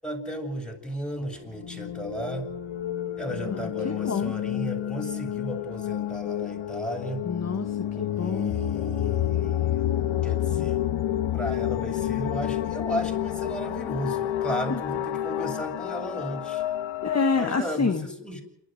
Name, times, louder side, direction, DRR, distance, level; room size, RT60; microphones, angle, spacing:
voice 1, 0.0-2.5 3.2-7.3 8.1-9.9 10.2-10.8 11.3-16.6 17.4-18.4, equal, ahead, 0 dB, 7.9 m, -34 dB
sound 1, 1.5-17.5, left 11 dB, 75° left, 1.6 m, -29 dB
voice 2, 3.5-4.3 7.2-8.5 14.7-14.8 17.0-18.1, left 5 dB, 35° left, 6 dB, 1.6 m, -28 dB
28.0 x 12.5 x 7.8 m, 0.78 s
cardioid pair, 65°, 47 cm